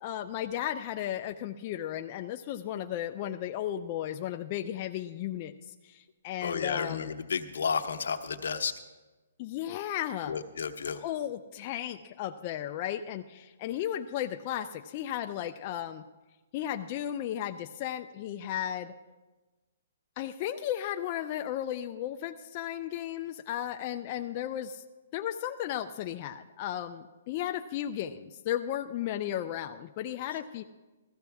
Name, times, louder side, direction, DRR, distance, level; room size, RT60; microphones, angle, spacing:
voice 1, 0.0-5.5 5.8-7.1 9.4-10.4 11.0-16.0 16.5-18.9 20.2-24.8 25.1-30.6, left 11 dB, 30° left, 6 dB, 0.4 m, -35 dB
voice 2, 6.4-8.7 10.2-11.0 30.3-30.4, left 6 dB, 75° left, 7 dB, 1.0 m, -32 dB
15.5 x 14.0 x 3.5 m, 1.2 s
hypercardioid pair, 165°, 0 cm